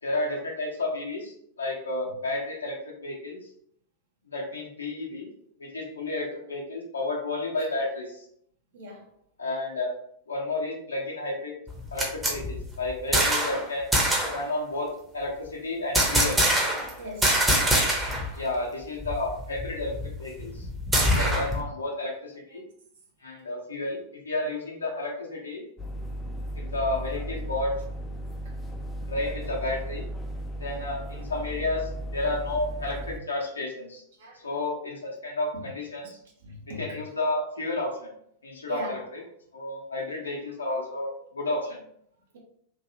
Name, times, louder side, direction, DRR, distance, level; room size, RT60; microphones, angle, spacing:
voice 1, 0.0-3.4 4.3-5.3 5.6-8.3 9.4-9.9 10.3-11.5 11.9-13.9 14.3-14.9 15.1-16.4 18.3-20.7 21.0-22.6 23.2-25.6 26.5-27.8 29.0-30.1 30.6-34.0 34.3-36.2 36.7-38.1 38.4-39.2 39.5-41.8, left 2 dB, 75° left, -1 dB, 0.8 m, -31 dB
voice 2, 8.7-9.1 17.0-17.4 18.3-18.4 34.2-34.5 35.5-35.7 36.4-36.9 38.7-39.0, right 1 dB, 60° right, -1 dB, 0.9 m, -39 dB
sound 1, 11.7-13.6 13.9-14.4 15.9-16.9 17.2-18.3 18.6-18.7 19.0-21.6, equal, 10° right, 0.8 m, -24 dB
sound 2, 25.8-33.2, right 1 dB, 15° left, 0.4 m, -35 dB
3.0 x 2.7 x 2.7 m, 0.69 s
figure-of-eight pair, 90°, 0 cm